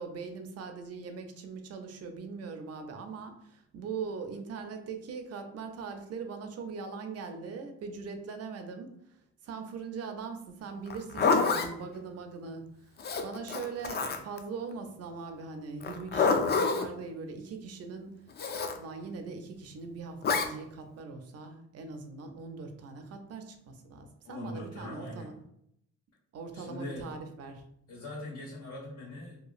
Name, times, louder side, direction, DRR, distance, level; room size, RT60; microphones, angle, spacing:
voice 1, 0.0-8.9 9.4-12.9 13.2-18.2 18.8-25.3 26.3-27.6, right 5 dB, 55° right, 6 dB, 0.5 m, -41 dB
Zipper (clothing), 10.9-11.7 13.0-14.4 15.8-16.9 18.4-18.8 20.2-20.5, left 4 dB, 35° left, 0.4 m, -27 dB
voice 2, 24.2-25.3 26.5-27.1 27.9-29.4, left 1 dB, 85° left, -9 dB, 1.2 m, -41 dB
2.9 x 2.3 x 2.4 m, 0.73 s
cardioid pair, 90°, 30 cm